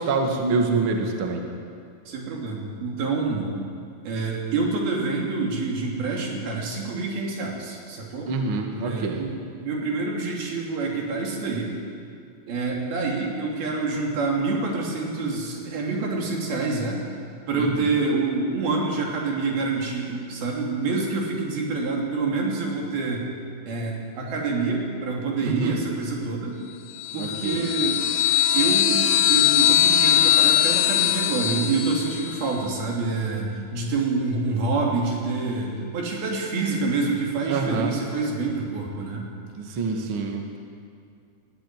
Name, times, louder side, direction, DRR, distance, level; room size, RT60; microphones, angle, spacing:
voice 1, 0.0-1.4 8.3-9.2 17.6-17.9 25.4-25.8 27.1-27.7 37.5-37.9 39.5-40.6, right 3 dB, 40° right, 2 dB, 2.3 m, -26 dB
voice 2, 2.1-3.5 4.0-8.3 8.8-11.7 12.5-17.0 17.5-23.3 23.6-26.6 27.1-28.0 28.5-39.3 39.7-39.8, right 3 dB, 85° right, -1 dB, 4.8 m, -27 dB
sound 1, 27.0-32.5, left 11 dB, 90° left, 2.8 m, -21 dB
21.0 x 14.0 x 9.5 m, 2.3 s
omnidirectional pair, 4.2 m